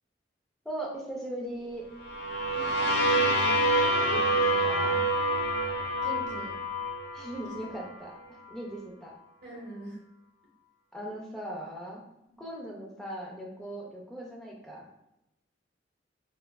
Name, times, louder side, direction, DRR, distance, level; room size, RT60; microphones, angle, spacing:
voice 1, 0.6-1.8 4.1-5.0 7.1-9.1 10.9-12.0 12.4-14.8, right 1 dB, 5° left, -3 dB, 0.5 m, -39 dB
sound 1, 2.0-7.8, right 1 dB, 60° left, 0.4 m, -27 dB
voice 2, 2.5-3.6 6.0-6.6 7.3-7.7 9.4-10.0 12.2-12.4, right 1 dB, 65° right, -1 dB, 0.8 m, -43 dB
3.2 x 2.4 x 2.2 m, 0.85 s
head